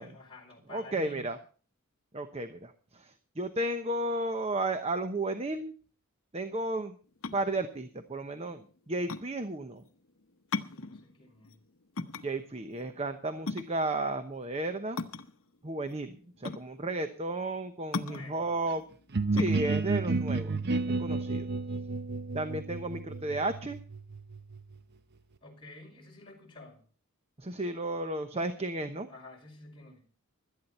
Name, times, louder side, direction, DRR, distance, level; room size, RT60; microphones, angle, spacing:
voice 1, 0.0-1.3 10.5-11.6 18.0-18.5 25.4-26.8 29.0-30.0, left 2 dB, 25° left, -1 dB, 5.1 m, -50 dB
voice 2, 0.7-1.4 2.1-5.7 6.3-7.0 7.3-9.8 12.2-15.0 15.6-18.8 19.3-20.6 21.0-21.5 22.3-23.8 27.4-29.1, right 2 dB, 30° right, 8 dB, 0.9 m, -33 dB
sound 1, 7.0-21.4, left 3 dB, 70° left, 0.9 m, -39 dB
sound 2, 19.1-24.8, right 3 dB, 50° right, 0.8 m, -31 dB
17.0 x 12.5 x 4.3 m, 0.39 s
head